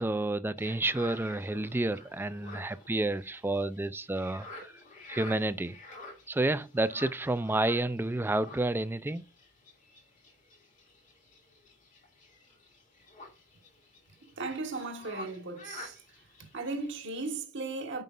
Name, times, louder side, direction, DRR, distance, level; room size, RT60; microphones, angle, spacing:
voice 1, 0.0-4.7 5.1-5.8 6.3-9.2, right 2 dB, 10° right, 0.3 m, -30 dB
sound 1, 0.6-17.4, left 2 dB, 35° left, 2.4 m, -50 dB
voice 2, 14.4-16.0 16.4-18.0, right 3 dB, 55° right, 1.5 m, -36 dB
9.2 x 5.4 x 2.5 m
head